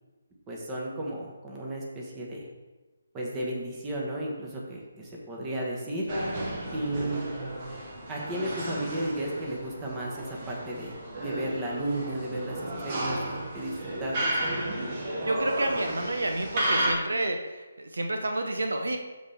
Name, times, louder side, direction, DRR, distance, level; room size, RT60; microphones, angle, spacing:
voice 1, 0.5-2.5 3.1-6.1 6.7-7.2 8.1-14.6, right 1 dB, 15° right, -3 dB, 1.4 m, -34 dB
sound 1, 6.1-16.9, right 1 dB, 35° right, 1.7 m, -33 dB
voice 2, 15.3-19.0, right 2 dB, 75° right, 4 dB, 0.8 m, -29 dB
12.5 x 4.2 x 3.5 m, 1.2 s
figure-of-eight pair, 150°, 0 cm